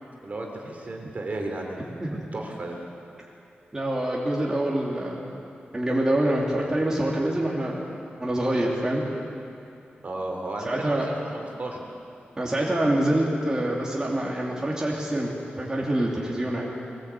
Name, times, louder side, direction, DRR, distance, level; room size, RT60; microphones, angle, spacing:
voice 1, 0.2-2.8 10.0-11.9, right 2 dB, 45° right, 1 dB, 3.4 m, -34 dB
voice 2, 3.7-5.3 5.7-7.9 8.2-9.0 10.6-11.1 12.4-16.7, right 1 dB, 20° right, -4 dB, 2.8 m, -26 dB
21.5 x 20.0 x 8.4 m, 2.6 s
wide cardioid pair, 150°, 4 cm